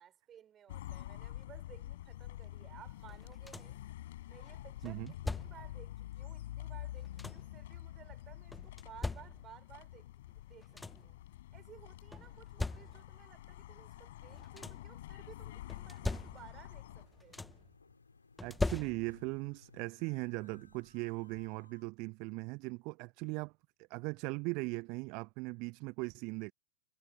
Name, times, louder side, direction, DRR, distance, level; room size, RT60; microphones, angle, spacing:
voice 1, 0.0-3.8 4.3-10.1 10.4-11.2 11.5-17.5, right 9 dB, 25° right, 6.0 m, -57 dB
sound 1, 0.7-17.1, left 14 dB, 55° left, 7.4 m, -48 dB
sound 2, 3.1-3.9 4.8-5.8 6.7-7.6 8.5-9.7 10.3-10.4 10.6-11.2 12.1-13.3 14.2-15.0 15.7-16.7 17.0-17.7 18.4-19.4 20.7-20.8 21.3-21.5, left 2 dB, 5° left, 1.2 m, -41 dB
sound 3, 16.6-21.9, left 4 dB, 80° left, 5.3 m, -63 dB
voice 2, 18.4-23.5 23.9-26.5, right 28 dB, 45° right, 1.0 m, -39 dB
figure-of-eight pair, 90°, 0 cm